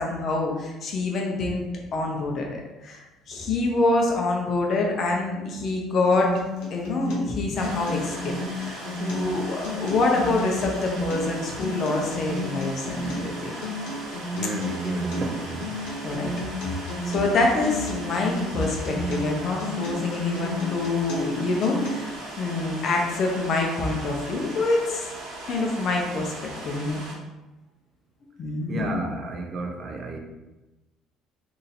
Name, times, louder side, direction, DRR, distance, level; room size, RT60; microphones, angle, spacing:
voice 1, 0.0-1.6 1.9-3.0 3.3-6.3 6.7-13.5 16.0-16.3 17.0-22.1 22.4-25.1 25.5-27.0 28.4-28.9, left 3 dB, 45° left, 0 dB, 0.7 m, -26 dB
Acoustic guitar, 6.1-22.1, left 1 dB, 90° left, 0.9 m, -33 dB
sound 1, 7.5-27.1, right 2 dB, 70° right, 1.1 m, -38 dB
voice 2, 14.3-15.8 28.7-30.2, right 3 dB, 40° right, 3 dB, 0.4 m, -32 dB
2.9 x 2.5 x 4.1 m, 1.1 s
cardioid pair, 135°, 0 cm